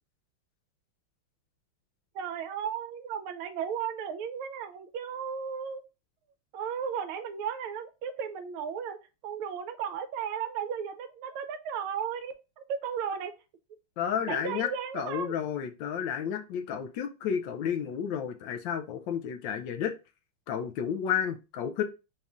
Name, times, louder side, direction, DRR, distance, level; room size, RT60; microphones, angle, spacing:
voice 1, 2.1-5.8 6.5-9.0 9.2-13.3 14.3-15.4, right 7 dB, 80° right, 9 dB, 1.4 m, -35 dB
voice 2, 14.0-14.7 14.9-19.9 20.5-21.8, left 8 dB, 75° left, 6 dB, 1.1 m, -31 dB
4.1 x 2.4 x 3.4 m, 0.29 s
omnidirectional pair, 2.3 m